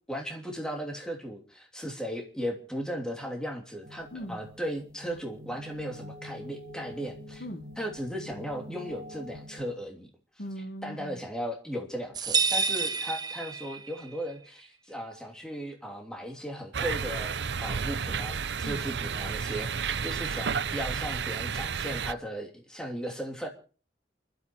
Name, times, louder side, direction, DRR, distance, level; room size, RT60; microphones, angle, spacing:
voice 1, 0.1-7.4 7.8-10.1 10.8-23.5, equal, 5° left, 2.9 m, -36 dB
sound 1, 3.8-9.7, equal, 50° right, 4.9 m, -46 dB
voice 2, 4.1-4.4 7.4-7.7 10.4-11.2 18.6-18.9, equal, 55° left, 1.4 m, -39 dB
sound 2, 12.2-14.1, right 4 dB, 25° right, 0.7 m, -28 dB
sound 3, 16.7-22.1, right 6 dB, 80° right, 0.6 m, -31 dB
29.5 x 12.5 x 3.1 m
head